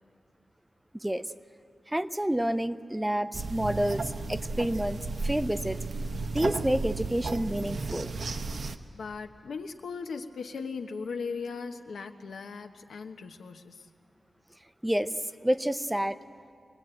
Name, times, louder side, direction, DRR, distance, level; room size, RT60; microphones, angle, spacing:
voice 1, 1.9-5.8 6.3-8.1 14.8-15.1 15.4-16.2, right 1 dB, 5° right, 12 dB, 0.5 m, -29 dB
sound 1, 3.3-8.8, right 3 dB, 55° right, 0.9 m, -34 dB
voice 2, 8.9-13.9, left 5 dB, 85° left, 6 dB, 1.2 m, -38 dB
23.5 x 20.0 x 9.0 m, 2.3 s
wide cardioid pair, 145°, 0 cm